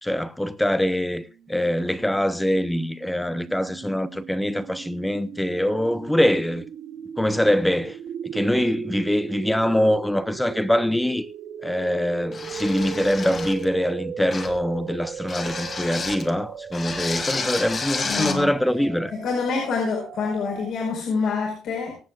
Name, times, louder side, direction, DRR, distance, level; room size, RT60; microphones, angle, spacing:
voice 1, 0.0-6.7 7.2-8.0 8.2-11.2 11.6-19.1, left 1 dB, 5° left, 0.8 m, -24 dB
sound 1, 2.0-20.7, right 7 dB, 50° right, 2.0 m, -38 dB
sound 2, 12.3-13.7 14.3-14.6 15.3-16.3 16.7-18.4, left 4 dB, 30° left, 1.9 m, -30 dB
voice 2, 18.0-18.5 19.1-22.0, left 4 dB, 60° left, 5.0 m, -26 dB
24.5 x 8.3 x 2.4 m
cardioid pair, 165°, 0 cm